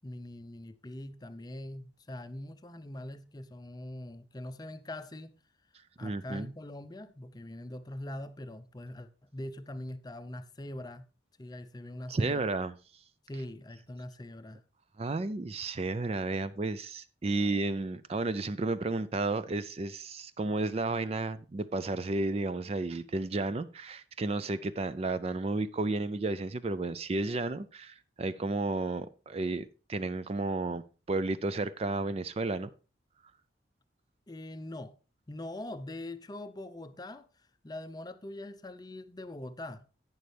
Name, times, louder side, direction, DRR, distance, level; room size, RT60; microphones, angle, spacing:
voice 1, 0.0-5.3 6.0-11.0 11.4-12.4 13.3-14.6 34.3-35.0 35.3-37.3 37.6-39.8, left 1 dB, 20° left, 0.6 m, -42 dB
voice 2, 6.0-6.5 12.1-12.7 15.0-30.8 31.1-32.7, right 2 dB, 30° right, 0.4 m, -32 dB
11.0 x 9.2 x 3.3 m
head